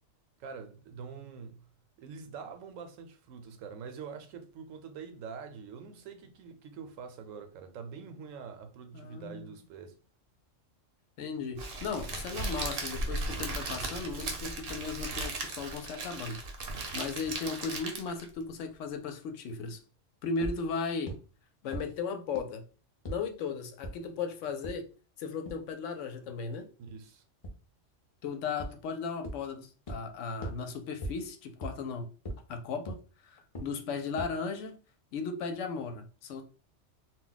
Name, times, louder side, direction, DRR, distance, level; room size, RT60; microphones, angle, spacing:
voice 1, 0.4-1.6 2.0-10.0 26.8-27.2, right 6 dB, 85° right, 1.0 m, -45 dB
voice 2, 8.9-9.5 11.2-16.4 16.9-19.8 20.2-21.1 21.6-22.6 23.1-24.9 25.2-26.7 28.2-32.1 32.5-33.0 33.3-34.7 35.1-36.4, left 5 dB, 75° left, 0.9 m, -36 dB
Crackle, 11.6-18.3, right 2 dB, 55° right, 0.7 m, -37 dB
sound 1, 20.4-20.5 21.1-21.2 21.7-21.8 22.3-22.4 23.0-23.1 23.8-23.9 24.6-24.7 25.4-25.5 27.4-27.5 28.6-28.7 29.2-29.3 29.9-30.0 30.4-30.5 31.0-31.1 31.6-31.7 32.2-32.3 32.9-33.0 33.5-33.6 34.2-34.3, right 1 dB, 45° left, 0.4 m, -36 dB
2.3 x 2.1 x 3.8 m
omnidirectional pair, 1.3 m